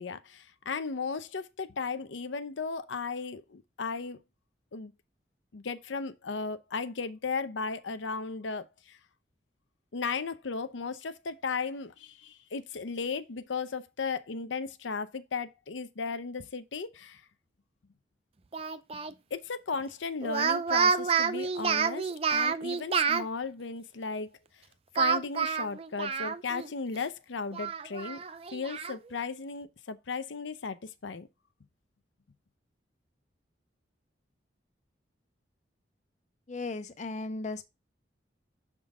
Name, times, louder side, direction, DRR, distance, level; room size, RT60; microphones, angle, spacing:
voice 1, 0.0-4.2 4.7-4.9 5.5-9.0 9.9-17.2 19.3-24.3 24.9-28.2 28.5-31.3, left 4 dB, 85° left, 0.6 m, -35 dB
Speech, 18.5-19.1 20.2-23.3 25.0-26.7 27.0-27.1 27.5-29.0, right 6 dB, 30° right, 0.4 m, -29 dB
voice 2, 36.5-37.6, left 3 dB, 40° left, 0.5 m, -36 dB
6.4 x 3.8 x 4.7 m
head